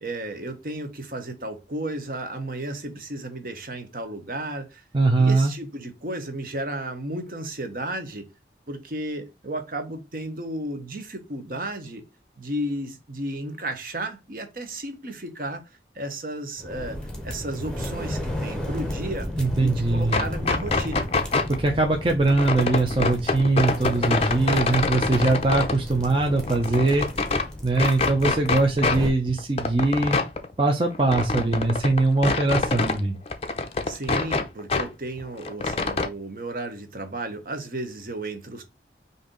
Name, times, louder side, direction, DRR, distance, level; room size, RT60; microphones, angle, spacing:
voice 1, 0.0-4.8 5.2-8.3 8.7-12.0 12.4-15.6 15.9-17.0 17.2-19.3 19.6-21.1 33.9-38.6, right 1 dB, 50° right, 0.9 m, -33 dB
voice 2, 4.9-5.5 19.4-20.3 21.5-27.1 27.6-30.2 30.6-33.2, right 2 dB, 30° right, 0.5 m, -22 dB
sound 1, 16.6-29.1, left 1 dB, 5° left, 0.8 m, -34 dB
sound 2, 20.0-21.6 22.3-25.8 26.2-27.5 27.8-29.0 29.3-33.0 33.3-34.9 35.2-36.1, left 3 dB, 35° left, 0.4 m, -25 dB
5.2 x 2.7 x 3.8 m
head